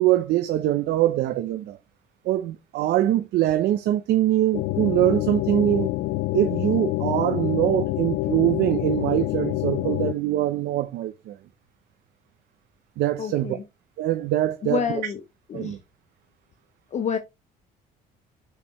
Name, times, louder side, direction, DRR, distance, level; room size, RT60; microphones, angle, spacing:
voice 1, 0.0-1.8 2.2-5.9 6.3-11.4 13.0-13.6 14.0-14.8 15.5-15.8, right 13 dB, 75° right, 0.7 m, -23 dB
sound 1, 4.5-10.1, left 18 dB, 90° left, 0.5 m, -27 dB
voice 2, 13.2-13.6 14.6-15.2 15.5-15.8 16.9-17.2, left 7 dB, 45° left, 0.8 m, -28 dB
6.4 x 5.5 x 3.1 m
cardioid pair, 110°, 17 cm